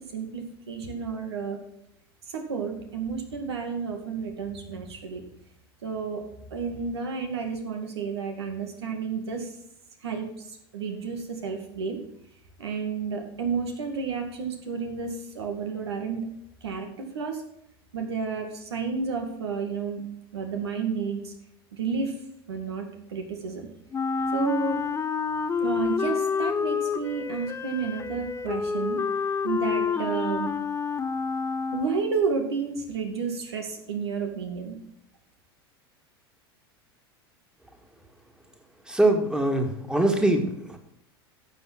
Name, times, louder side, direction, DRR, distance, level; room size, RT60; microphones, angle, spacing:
voice 1, 0.1-1.6 2.3-5.2 5.8-6.2 6.5-9.5 10.0-12.0 12.6-16.3 16.6-17.4 17.9-20.0 20.3-21.3 21.7-22.2 22.5-23.7 24.3-24.8 25.6-29.0 29.4-30.5 31.7-34.8, right 5 dB, 85° right, 4 dB, 2.3 m, -31 dB
Wind instrument woodwind instrument, 23.9-32.2, left 5 dB, 20° left, 0.7 m, -28 dB
voice 2, 38.9-40.8, right 1 dB, 5° right, 3 dB, 2.1 m, -23 dB
11.5 x 6.9 x 6.3 m, 0.76 s
hypercardioid pair, 90°, 13 cm